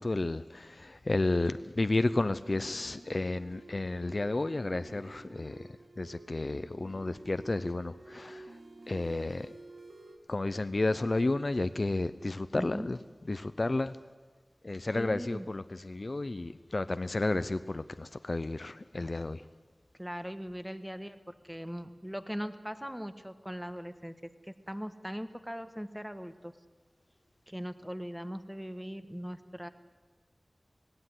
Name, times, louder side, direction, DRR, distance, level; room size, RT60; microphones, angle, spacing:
voice 1, 0.0-8.6 8.9-9.5 10.3-13.0 13.3-14.0 14.6-19.4, left 2 dB, 50° left, 12 dB, 0.6 m, -32 dB
sound 1, 2.5-10.2, right 2 dB, 75° right, 1.9 m, -51 dB
voice 2, 12.5-12.9 14.9-15.5 20.0-24.1 24.4-26.5 27.5-29.7, equal, 5° right, 9 dB, 1.4 m, -40 dB
17.5 x 17.0 x 9.9 m, 1.3 s
wide cardioid pair, 60°, 0 cm